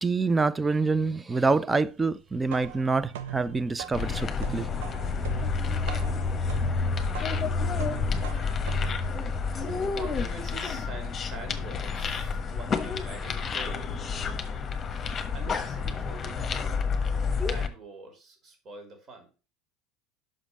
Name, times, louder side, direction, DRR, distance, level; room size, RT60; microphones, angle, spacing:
voice 1, 0.0-4.7, right 3 dB, 20° right, 0.5 m, -26 dB
sound 1, 2.2-9.9, right 9 dB, 70° right, 0.7 m, -42 dB
sound 2, 3.9-17.7, left 5 dB, 30° left, 1.2 m, -29 dB
voice 2, 9.6-13.9 15.3-16.5 17.4-19.3, right 3 dB, 40° right, 3.2 m, -44 dB
6.0 x 5.0 x 5.4 m
hypercardioid pair, 75°, 0 cm